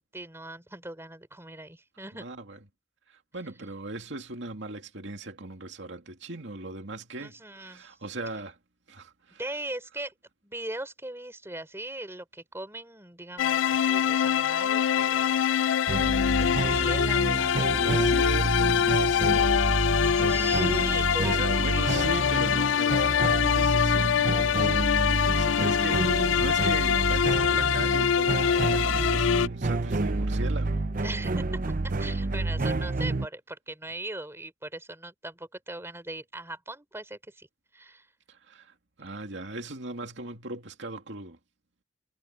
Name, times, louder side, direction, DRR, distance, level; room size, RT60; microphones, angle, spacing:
voice 1, 0.0-2.3 7.2-8.0 9.4-10.1 10.4-15.5 16.1-18.5 20.0-22.2 25.5-26.5 31.0-31.6 31.8-37.5 37.7-38.1, right 2 dB, 15° right, 4.0 m, -40 dB
voice 2, 2.2-2.6 3.1-8.6 8.9-9.4 17.7-20.0 21.2-24.9 25.3-30.8 38.3-41.4, right 2 dB, 70° right, 2.5 m, -38 dB
sound 1, 13.4-29.5, left 8 dB, 85° left, 0.3 m, -24 dB
sound 2, 15.9-33.3, right 2 dB, 45° right, 0.7 m, -29 dB
head